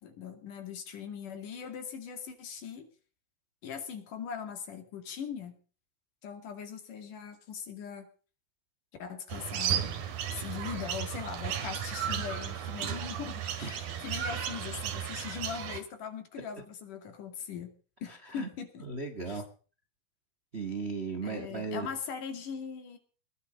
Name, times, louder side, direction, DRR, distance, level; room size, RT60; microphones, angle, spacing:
voice 1, 0.0-2.9 3.6-5.6 6.2-8.1 9.0-9.8 10.3-17.7 18.0-18.9 19.3-19.4 21.2-23.0, left 7 dB, 60° left, 7 dB, 3.7 m, -40 dB
sound 1, 9.3-15.8, right 9 dB, 80° right, 3.8 m, -34 dB
voice 2, 18.1-18.5 18.8-19.4 20.5-21.9, right 4 dB, 55° right, 7 dB, 0.7 m, -36 dB
20.0 x 12.0 x 5.3 m, 0.39 s
omnidirectional pair, 4.3 m